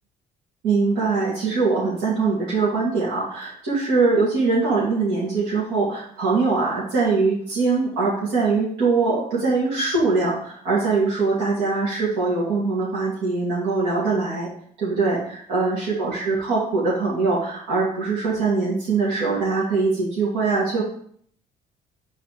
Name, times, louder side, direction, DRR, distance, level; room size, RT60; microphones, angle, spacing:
voice 1, 0.6-14.5 14.8-20.8, right 4 dB, 90° right, -9 dB, 2.7 m, -22 dB
6.9 x 4.1 x 5.2 m, 0.62 s
cardioid pair, 110°, 17 cm